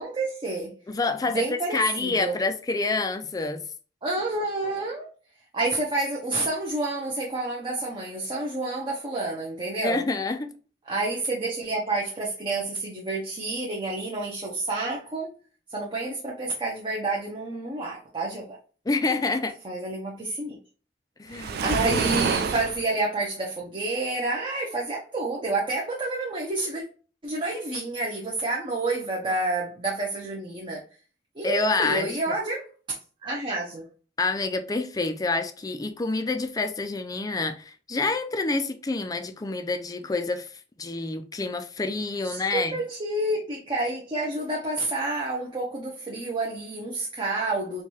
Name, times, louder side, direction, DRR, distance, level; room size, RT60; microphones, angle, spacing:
voice 1, 0.0-0.8 1.3-2.4 4.0-5.1 5.5-10.1 10.9-15.3 15.7-18.6 19.6-20.6 21.6-26.8 27.2-30.8 31.4-32.7 33.2-33.9 42.2-47.8, right 2 dB, 30° right, 0.7 m, -29 dB
voice 2, 0.9-3.6 9.8-10.5 18.9-19.6 21.2-21.8 31.4-32.4 34.2-40.5 40.8-42.8, left 3 dB, 20° left, 0.4 m, -27 dB
Waves surf, 21.3-22.8, right 6 dB, 60° right, 0.4 m, -27 dB
4.5 x 2.3 x 2.8 m
head